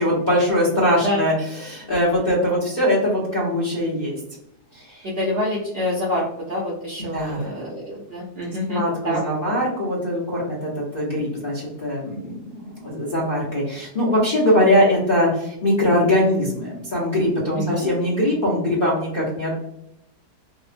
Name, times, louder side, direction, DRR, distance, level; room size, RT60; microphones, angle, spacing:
voice 1, 0.0-1.3 1.6-4.2 4.7-5.0 7.1-7.7 8.7-19.5, left 1 dB, 45° left, -5 dB, 0.6 m, -21 dB
voice 2, 5.0-9.2 17.6-17.9, left 1 dB, 60° right, -6 dB, 0.6 m, -26 dB
2.8 x 2.0 x 2.4 m, 0.77 s
omnidirectional pair, 1.8 m